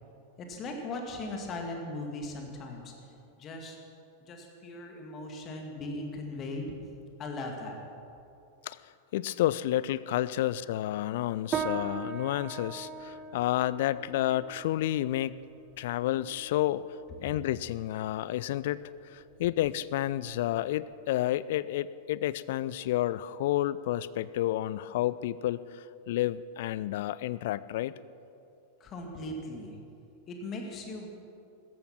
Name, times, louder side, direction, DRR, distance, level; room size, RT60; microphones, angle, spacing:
voice 1, 0.4-2.9 3.4-3.8 4.2-6.7 7.2-7.8 28.8-29.8 30.3-31.1, left 2 dB, 30° left, 2 dB, 2.3 m, -38 dB
voice 2, 9.1-15.4 15.8-16.8 17.2-27.9, left 14 dB, 55° left, 18 dB, 0.4 m, -30 dB
sound 1, 11.5-21.2, right 6 dB, 25° right, 1.1 m, -41 dB
16.0 x 14.0 x 6.0 m, 2.7 s
figure-of-eight pair, 90°, 0 cm